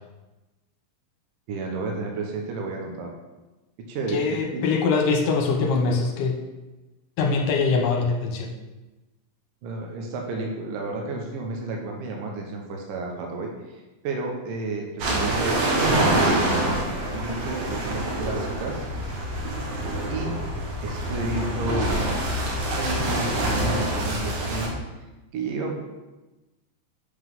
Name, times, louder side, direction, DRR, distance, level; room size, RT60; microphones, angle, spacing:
voice 1, 1.5-3.1 3.8-4.6 9.6-18.9 20.1-20.4 20.8-21.9 22.8-24.7 25.3-25.8, right 3 dB, 80° right, 1 dB, 2.5 m, -31 dB
voice 2, 4.1-6.4 7.2-8.5, left 4 dB, 80° left, 1 dB, 2.3 m, -23 dB
sound 1, 15.0-24.7, right 1 dB, 65° right, 2.3 m, -26 dB
7.9 x 3.9 x 5.3 m, 1.1 s
omnidirectional pair, 4.0 m